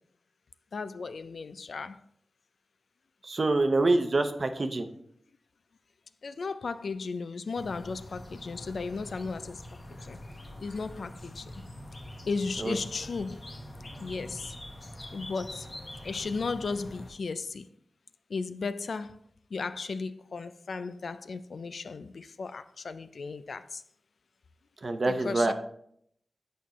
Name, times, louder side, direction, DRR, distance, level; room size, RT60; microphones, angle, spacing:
voice 1, 0.7-2.0 6.2-9.6 9.9-10.2 10.6-11.5 12.2-13.4 14.0-14.5 15.1-15.7 16.0-17.7 18.3-19.2 19.5-23.8 25.1-25.5, left 4 dB, 75° left, 0.3 m, -35 dB
voice 2, 3.2-4.9 12.6-12.8 24.8-25.5, right 2 dB, 55° right, 0.7 m, -26 dB
sound 1, 7.6-17.1, left 1 dB, 40° left, 1.1 m, -44 dB
8.1 x 4.5 x 3.0 m
cardioid pair, 60°, 0 cm